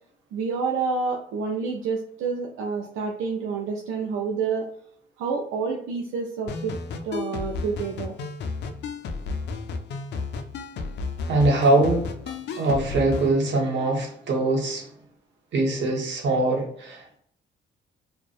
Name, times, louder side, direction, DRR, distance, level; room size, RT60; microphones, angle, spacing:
voice 1, 0.3-4.6 5.2-6.7 7.0-8.1, right 5 dB, 85° right, 1 dB, 0.4 m, -28 dB
sound 1, 6.5-13.3, left 4 dB, 60° left, 0.4 m, -33 dB
voice 2, 11.3-12.1 12.5-14.9 15.5-17.2, right 2 dB, 65° right, 0 dB, 0.9 m, -22 dB
2.5 x 2.1 x 2.3 m, 0.64 s
cardioid pair, 90°, 20 cm